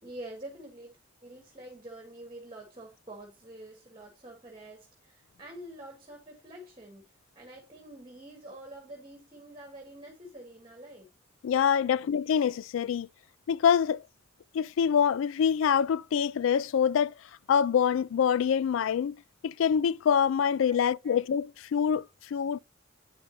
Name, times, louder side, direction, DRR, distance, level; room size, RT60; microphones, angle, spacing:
voice 1, 0.0-7.0 7.3-11.1 11.8-11.9 20.7-21.2, right 1 dB, 25° right, 1.8 m, -47 dB
voice 2, 11.4-13.1 13.5-14.0 14.5-17.1 17.5-19.2 19.4-22.6, left 7 dB, 75° left, 0.3 m, -25 dB
8.9 x 5.2 x 2.7 m
head